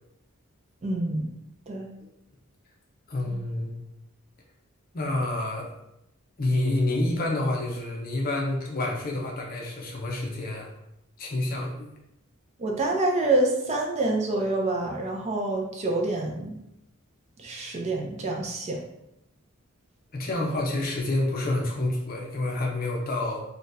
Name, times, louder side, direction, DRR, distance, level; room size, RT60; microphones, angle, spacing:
voice 1, 0.8-1.4 1.7-1.9 3.3-3.4 12.6-16.6 17.4-18.8, right 2 dB, 30° right, 0 dB, 0.4 m, -27 dB
voice 2, 3.1-3.7 4.9-5.7 6.4-10.7 11.2-11.9 20.1-23.4, left 2 dB, 40° left, -1 dB, 0.7 m, -28 dB
3.9 x 2.3 x 2.6 m, 0.85 s
head